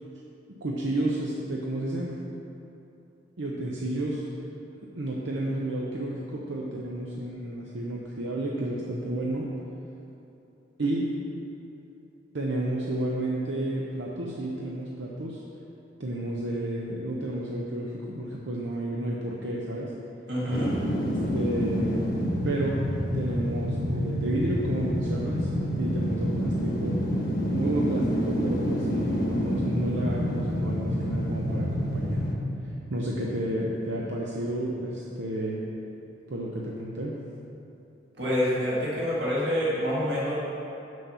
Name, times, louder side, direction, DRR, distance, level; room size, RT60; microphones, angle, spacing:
voice 1, 0.6-2.1 3.4-4.2 4.9-9.5 10.8-11.1 12.3-15.4 16.0-19.9 21.3-22.1 22.4-22.8 23.1-25.5 25.8-27.0 27.5-32.3 32.6-35.6 36.3-37.2, right 1 dB, 80° right, -3 dB, 0.8 m, -31 dB
voice 2, 20.3-20.7 38.2-40.4, equal, 60° right, -7 dB, 1.8 m, -27 dB
sound 1, 20.5-33.5 33.9-34.0, equal, 50° left, 1.1 m, -28 dB
7.0 x 6.4 x 5.6 m, 2.9 s
head